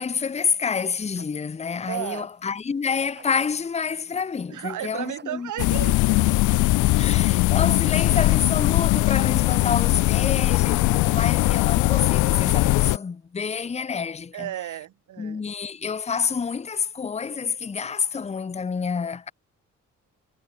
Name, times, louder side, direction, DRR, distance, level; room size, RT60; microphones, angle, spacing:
voice 1, 0.0-5.5 6.8-14.5 15.2-19.3, left 6 dB, 20° left, 0.7 m, -28 dB
sound 1, 0.7-10.7, right 5 dB, 35° right, 6.2 m, -53 dB
voice 2, 1.9-2.3 4.5-7.1 7.5-7.7 9.5-9.7 14.3-15.5, right 13 dB, 80° right, 5.8 m, -35 dB
sound 2, 5.6-13.0, left 19 dB, 85° left, 0.5 m, -20 dB
cardioid pair, 90°, 30 cm